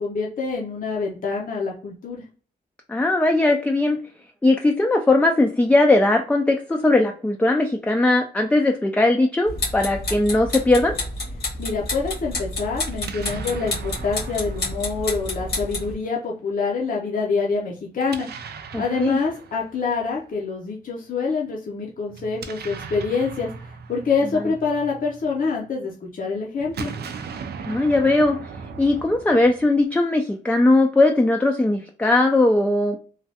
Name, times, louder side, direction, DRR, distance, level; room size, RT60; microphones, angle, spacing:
voice 1, 0.0-2.2 11.6-18.3 18.8-23.5 23.9-26.9, left 4 dB, 60° left, -2 dB, 0.6 m, -26 dB
voice 2, 2.9-4.0 4.4-10.9 18.7-19.2 27.7-28.4 28.8-33.0, left 2 dB, 10° left, 3 dB, 0.3 m, -19 dB
sound 1, 9.5-15.9, left 2 dB, 90° left, 1.5 m, -29 dB
Explosion, 12.8-15.9 18.0-20.2 22.1-25.5 26.6-30.0, right 5 dB, 85° right, 0.4 m, -38 dB
3.2 x 2.3 x 2.7 m, 0.40 s
wide cardioid pair, 120°, 16 cm